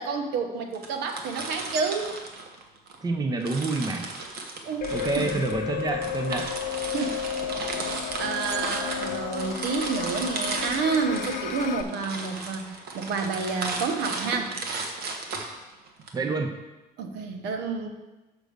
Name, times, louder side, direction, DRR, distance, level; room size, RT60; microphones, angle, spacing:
voice 1, 0.0-2.1 4.6-5.4 6.9-7.2 8.2-14.5 17.0-17.9, right 5 dB, 90° right, 5 dB, 1.0 m, -29 dB
sound 1, 0.7-3.0 3.4-16.1, right 3 dB, 65° right, 1.2 m, -35 dB
voice 2, 3.0-4.1 4.9-6.5 16.1-16.6, right 3 dB, 25° right, 5 dB, 0.7 m, -28 dB
sound 2, 4.8-11.8, left 9 dB, 55° left, 0.6 m, -33 dB
6.4 x 5.2 x 6.6 m, 1.1 s
cardioid pair, 110°, 17 cm